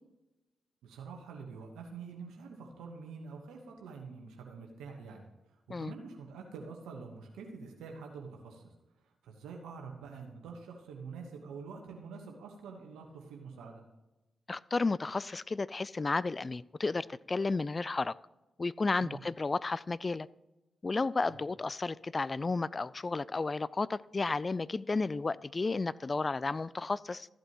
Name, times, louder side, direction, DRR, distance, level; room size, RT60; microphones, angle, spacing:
voice 1, 0.8-5.3 5.8-8.6 9.2-13.8 19.0-19.2 21.3-21.4, right 5 dB, 85° right, 2 dB, 1.2 m, -46 dB
voice 2, 14.5-18.1 18.6-20.3 20.8-27.3, left 3 dB, 40° left, 20 dB, 0.3 m, -32 dB
14.0 x 7.9 x 3.0 m, 1.0 s
supercardioid pair, 40°, 0 cm